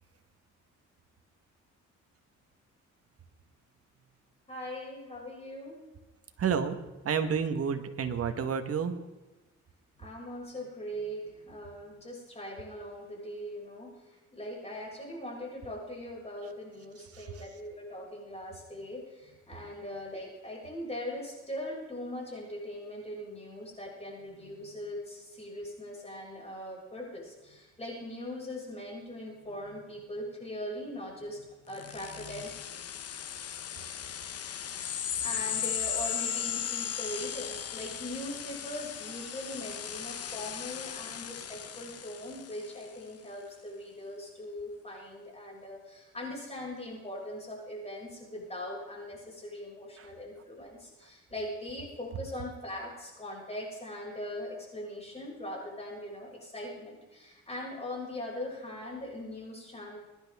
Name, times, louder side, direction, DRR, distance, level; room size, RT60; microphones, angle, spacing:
voice 1, 4.5-5.8 10.0-32.5 35.2-60.0, left 1 dB, 20° left, -3 dB, 6.4 m, -41 dB
voice 2, 6.4-6.8 7.0-9.0 17.1-17.3 50.0-50.1, right 6 dB, 50° right, 7 dB, 1.5 m, -30 dB
sound 1, 31.7-42.8, left 9 dB, 55° left, 1.0 m, -37 dB
23.5 x 10.5 x 3.6 m, 1.1 s
cardioid pair, 90°, 30 cm